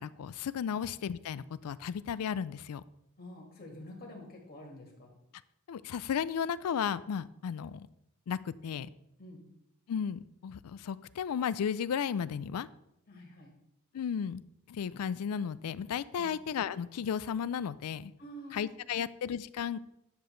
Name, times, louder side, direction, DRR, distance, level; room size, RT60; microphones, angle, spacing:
voice 1, 0.0-2.8 5.7-7.9 8.3-8.9 9.9-12.7 13.9-14.4 14.7-18.1 18.5-19.8, left 7 dB, 75° left, 17 dB, 0.4 m, -34 dB
voice 2, 3.2-5.1 9.2-9.5 13.1-13.5 16.2-16.3 18.2-19.0, equal, 45° left, 0 dB, 1.9 m, -48 dB
10.0 x 6.8 x 3.2 m, 0.82 s
head